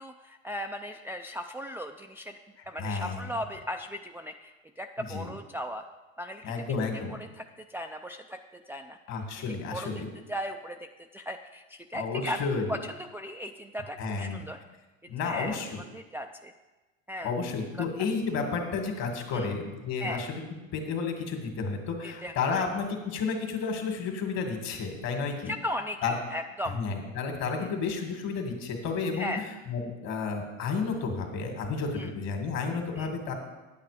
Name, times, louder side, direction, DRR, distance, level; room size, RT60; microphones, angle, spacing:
voice 1, 0.0-2.3 2.7-5.9 6.2-6.5 7.1-9.0 9.7-9.9 10.3-14.6 15.2-16.5 17.1-17.4 19.3-19.5 20.0-20.2 22.0-22.7 25.5-26.8 27.6-27.7 29.1-29.4 32.0-32.1 33.0-33.1, equal, 5° right, 4 dB, 0.3 m, -37 dB
voice 2, 2.8-3.3 5.1-5.3 6.4-7.2 9.1-10.1 11.9-12.7 14.0-14.4 15.1-15.8 17.2-20.4 20.7-25.5 26.0-26.1 26.7-29.3 29.7-33.3, left 4 dB, 55° left, 4 dB, 2.1 m, -31 dB
9.3 x 8.4 x 5.0 m, 1.1 s
supercardioid pair, 110°, 33 cm